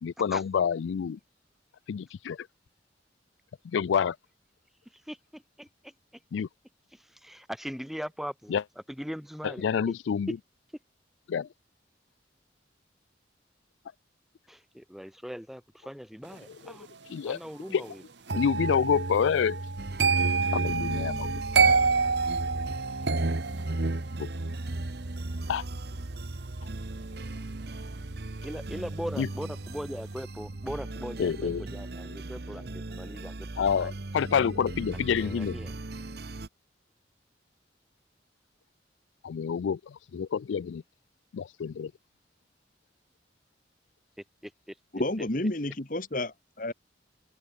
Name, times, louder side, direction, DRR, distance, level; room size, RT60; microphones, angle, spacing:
voice 1, 0.0-1.2 1.9-2.4 3.7-4.1 6.3-6.5 8.5-8.6 9.6-10.3 11.3-11.5 17.1-17.4 17.7-17.8 18.4-19.6 20.5-21.4 24.2-24.3 25.5-25.6 29.2-29.3 31.2-31.6 33.6-35.5 39.2-39.8 40.1-40.8 41.3-41.9, left 7 dB, 85° left, 0.4 m, -27 dB
voice 2, 4.9-5.9 6.9-9.9 14.5-16.9 17.2-18.0 28.4-33.9 34.9-35.7 44.4-44.8, equal, ahead, 3.0 m, -40 dB
sound 1, 18.3-29.2 29.5-29.9, right 4 dB, 75° right, 1.4 m, -29 dB
sound 2, 19.8-36.5, right 2 dB, 55° right, 0.9 m, -39 dB
voice 3, 44.9-46.7, left 1 dB, 45° left, 1.9 m, -30 dB
head